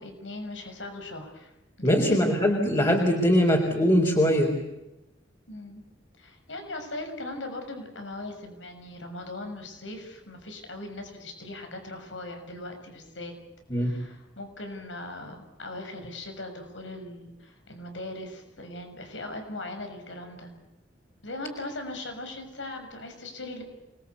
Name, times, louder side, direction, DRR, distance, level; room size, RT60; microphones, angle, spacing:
voice 1, 0.0-1.5 1.8-2.2 5.5-5.8 6.2-13.3 13.7-20.5 21.2-23.6, left 2 dB, 85° left, 5 dB, 6.6 m, -39 dB
voice 2, 1.8-4.6 13.7-14.0, equal, 25° left, -1 dB, 4.1 m, -22 dB
28.5 x 21.5 x 8.4 m, 0.95 s
head